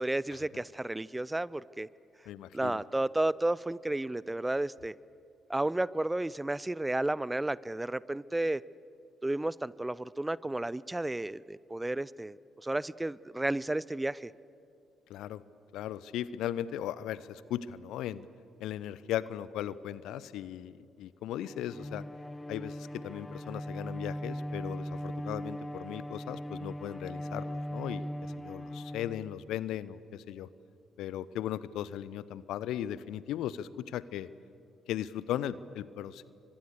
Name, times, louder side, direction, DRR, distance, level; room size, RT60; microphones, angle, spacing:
voice 1, 0.0-1.9 2.5-4.9 5.5-8.6 9.2-14.3, right 1 dB, 15° right, 21 dB, 0.6 m, -32 dB
voice 2, 2.3-2.8 15.1-15.4 15.7-18.3 18.6-22.0 22.5-30.5 31.0-34.3 34.9-36.2, left 11 dB, 65° left, 18 dB, 0.7 m, -37 dB
Bowed string instrument, 21.3-29.8, equal, 10° left, 1.2 m, -39 dB
29.5 x 24.5 x 6.8 m, 2.5 s
figure-of-eight pair, 40°, 0 cm